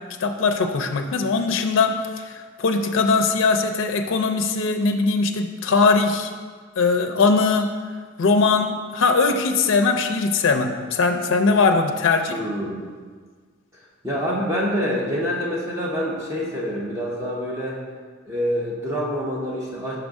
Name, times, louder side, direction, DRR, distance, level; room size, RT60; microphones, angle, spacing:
voice 1, 0.2-6.3 6.8-7.7 8.2-12.4, left 4 dB, 70° left, 5 dB, 0.4 m, -20 dB
voice 2, 12.3-12.9 14.0-17.8 18.2-19.9, equal, 15° right, -5 dB, 0.7 m, -26 dB
5.8 x 5.1 x 3.5 m, 1.5 s
head